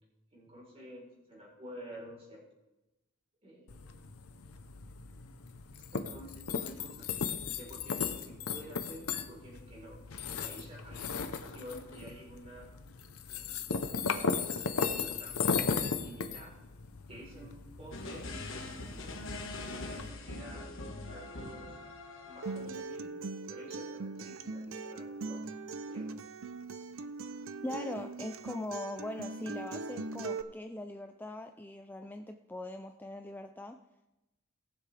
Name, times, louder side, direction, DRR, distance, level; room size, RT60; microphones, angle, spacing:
voice 1, 0.3-2.5 3.4-3.8 5.9-7.2 7.6-10.0 10.4-12.7 13.2-13.5 14.9-16.5 17.1-18.3 18.9-19.1 19.5-21.8 22.2-23.1 23.5-25.4 25.8-26.1, equal, 30° right, -3 dB, 4.0 m, -50 dB
sound 1, 3.7-20.1, left 5 dB, 85° left, 0.8 m, -36 dB
sound 2, 17.9-22.8, left 2 dB, 60° left, 1.4 m, -43 dB
Acoustic guitar, 22.4-30.4, right 3 dB, 65° right, 0.5 m, -40 dB
voice 2, 27.6-33.8, left 1 dB, 10° left, 6 dB, 0.3 m, -41 dB
18.5 x 7.4 x 3.4 m, 0.98 s
head